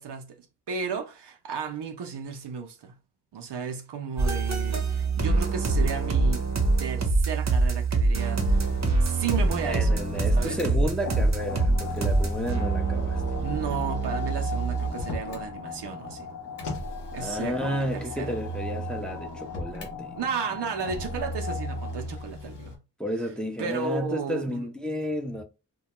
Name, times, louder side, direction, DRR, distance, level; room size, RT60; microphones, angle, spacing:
voice 1, 0.0-3.0 3.3-6.5 6.8-8.7 9.0-10.0 10.3-10.6 13.4-16.3 17.1-18.3 20.2-22.8 23.6-24.7, right 6 dB, 85° right, 0.6 m, -34 dB
sound 1, 4.2-14.9, right 3 dB, 45° right, 0.7 m, -25 dB
Motor vehicle (road), 8.5-10.7 11.9-15.5 16.6-19.9 20.8-22.7, right 1 dB, 90° left, 0.7 m, -37 dB
voice 2, 9.7-13.2 17.1-20.2 23.0-25.4, equal, ahead, 0.5 m, -32 dB
sound 2, 11.0-22.4, left 6 dB, 45° left, 0.7 m, -39 dB
2.2 x 2.2 x 2.8 m
cardioid pair, 40°, 40 cm